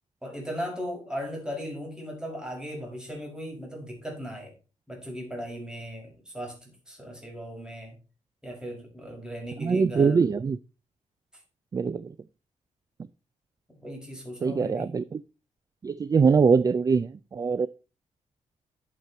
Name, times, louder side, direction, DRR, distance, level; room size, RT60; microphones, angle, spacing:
voice 1, 0.2-4.5 4.9-8.0 8.4-10.2 13.8-14.9, equal, 5° right, 0 dB, 5.8 m, -37 dB
voice 2, 9.6-10.6 11.7-12.1 14.4-15.2 15.8-17.7, right 5 dB, 30° right, 17 dB, 0.4 m, -23 dB
11.5 x 6.8 x 4.3 m, 0.32 s
cardioid pair, 125°, 13 cm